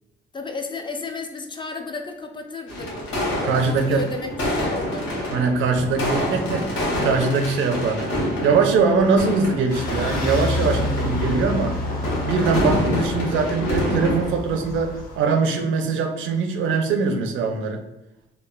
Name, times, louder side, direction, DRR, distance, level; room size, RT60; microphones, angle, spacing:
voice 1, 0.3-3.0 3.3-5.1, left 3 dB, 25° left, 5 dB, 0.3 m, -33 dB
sound 1, 2.7-14.3, left 1 dB, 80° left, 1.0 m, -27 dB
voice 2, 3.4-4.0 5.3-8.1 8.4-11.8 12.2-17.8, right 4 dB, 75° right, 5 dB, 0.5 m, -22 dB
sound 2, 9.7-15.2, left 2 dB, 45° left, 0.8 m, -29 dB
3.1 x 2.0 x 2.2 m, 0.92 s
cardioid pair, 90°, 20 cm